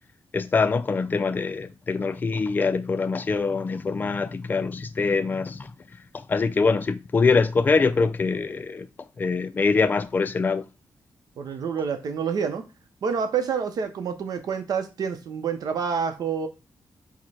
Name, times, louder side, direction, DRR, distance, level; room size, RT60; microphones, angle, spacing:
voice 1, 0.3-5.7 6.1-8.9 9.2-10.6, left 4 dB, 30° left, 0.3 m, -24 dB
voice 2, 11.4-12.6 13.0-16.5, right 6 dB, 75° right, 0.7 m, -28 dB
4.9 x 2.1 x 4.2 m
wide cardioid pair, 150°, 7 cm